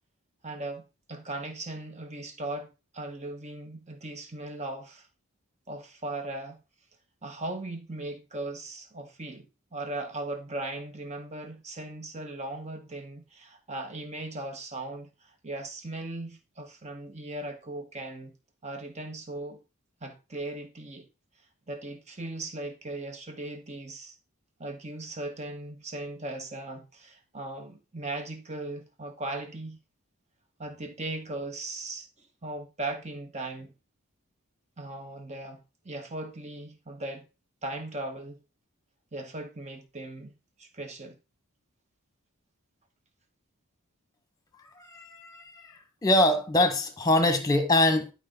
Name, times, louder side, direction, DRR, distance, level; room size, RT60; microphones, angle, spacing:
voice 1, 0.4-0.8 1.1-5.1 5.7-6.6 7.2-18.3 18.6-19.6 20.0-21.1 21.7-24.1 24.6-29.8 30.6-33.7 34.8-37.3 37.6-38.4 39.1-40.3 40.6-41.2, right 2 dB, 30° right, 1.5 m, -38 dB
voice 2, 44.8-45.7 46.0-48.1, left 1 dB, 15° left, 1.5 m, -24 dB
11.0 x 5.3 x 4.0 m
head